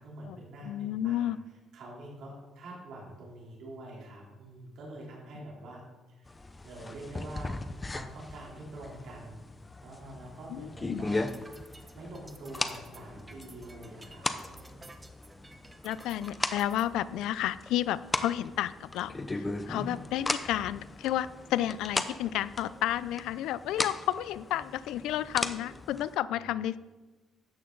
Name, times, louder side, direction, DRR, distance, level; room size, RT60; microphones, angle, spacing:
voice 1, 0.0-1.3 1.7-5.8 6.1-6.3 6.6-7.6 7.9-9.4 9.8-11.3 11.7-14.7 19.7-20.1 26.3-26.5, right 1 dB, 65° right, -4 dB, 3.5 m, -46 dB
voice 2, 0.6-1.4 10.5-11.0 15.8-26.8, left 12 dB, 90° left, 17 dB, 0.4 m, -31 dB
sound 1, 6.3-26.2, left 2 dB, 15° left, 0.6 m, -38 dB
sound 2, 11.1-16.8, right 2 dB, 15° right, 0.9 m, -53 dB
13.0 x 8.9 x 3.9 m, 1.2 s
cardioid pair, 140°, 0 cm